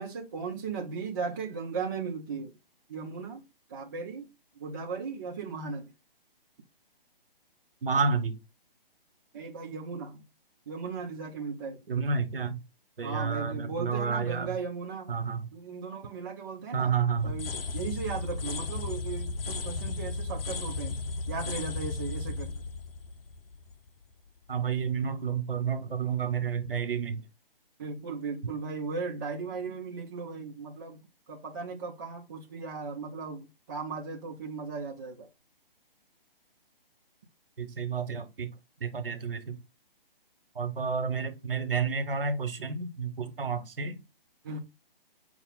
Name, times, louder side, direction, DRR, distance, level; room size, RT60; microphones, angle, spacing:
voice 1, 0.0-2.6 2.9-3.4 3.7-5.9 9.3-10.3 10.7-11.8 13.0-15.1 15.5-16.9 17.2-21.0 21.3-22.5 27.8-31.0 31.3-35.3 44.4-44.6, right 5 dB, 20° right, 0.5 m, -37 dB
voice 2, 7.8-8.4 11.9-12.6 13.0-14.5 15.1-15.5 16.7-17.4 24.5-27.2 37.6-38.5 38.8-39.6 40.5-44.0, right 5 dB, 70° right, 1.1 m, -30 dB
sound 1, 17.2-24.0, left 3 dB, 75° left, 0.6 m, -35 dB
5.2 x 2.4 x 3.7 m
figure-of-eight pair, 145°, 29 cm